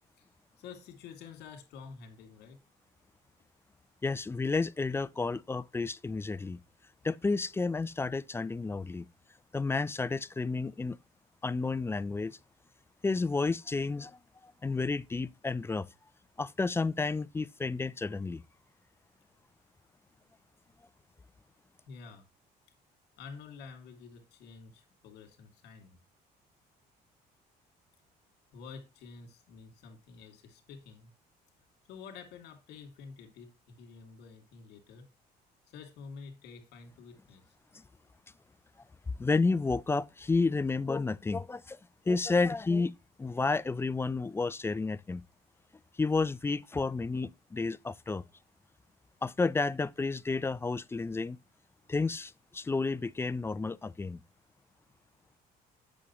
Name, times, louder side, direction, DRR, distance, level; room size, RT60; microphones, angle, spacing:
voice 1, 0.6-2.6 21.9-22.2 23.2-26.0 28.5-31.1 31.9-35.1 35.7-37.6, left 5 dB, 80° left, 2.3 m, -49 dB
voice 2, 4.0-6.6 7.0-9.0 9.5-11.0 11.4-12.4 13.0-15.9 16.4-18.4 39.2-41.8 42.1-42.9 43.2-45.2 46.0-48.2 49.2-51.4 51.9-54.2, left 3 dB, 15° left, 0.4 m, -31 dB
8.5 x 6.2 x 3.0 m
cardioid pair, 110°, 17 cm